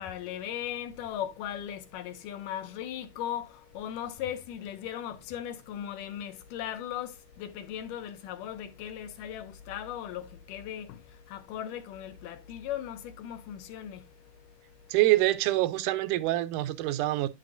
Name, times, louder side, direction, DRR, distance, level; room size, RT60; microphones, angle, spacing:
voice 1, 0.0-15.0, left 10 dB, 80° left, 2.3 m, -38 dB
voice 2, 14.9-17.3, right 17 dB, 80° right, 2.0 m, -25 dB
9.0 x 6.6 x 2.6 m
omnidirectional pair, 3.8 m